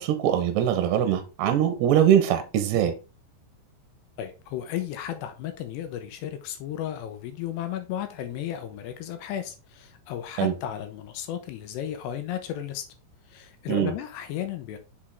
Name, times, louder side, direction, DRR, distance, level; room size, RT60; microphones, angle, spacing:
voice 1, 0.0-2.9 10.4-10.5 13.7-13.9, right 10 dB, 75° right, 2.7 m, -22 dB
voice 2, 4.2-12.8 13.3-14.8, left 10 dB, 80° left, 2.6 m, -34 dB
7.1 x 5.0 x 3.5 m
omnidirectional pair, 5.4 m